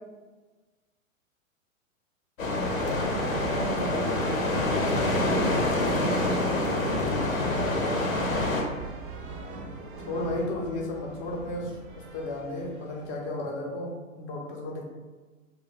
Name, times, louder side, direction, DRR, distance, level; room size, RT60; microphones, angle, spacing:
sound 1, 2.4-8.6, left 1 dB, 80° left, 0.7 m, -26 dB
sound 2, 2.7-13.4, right 2 dB, 40° right, 0.5 m, -41 dB
voice 1, 3.1-4.2 6.8-7.9 10.0-14.8, left 2 dB, 25° left, -2 dB, 0.4 m, -35 dB
2.3 x 2.2 x 3.7 m, 1.3 s
figure-of-eight pair, 105°, 40 cm